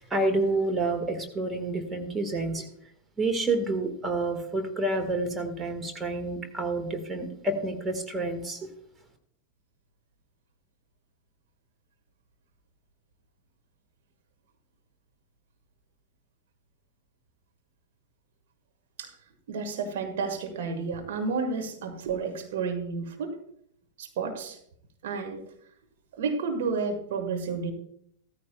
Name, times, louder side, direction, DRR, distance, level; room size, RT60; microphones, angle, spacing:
voice 1, 0.1-2.7 3.2-8.6, right 2 dB, 15° right, 5 dB, 1.8 m, -29 dB
voice 2, 19.5-23.4 24.0-24.6 25.0-25.4 26.1-27.7, right 4 dB, 55° right, 4 dB, 1.6 m, -31 dB
16.0 x 13.5 x 2.3 m, 0.68 s
figure-of-eight pair, 90°, 0 cm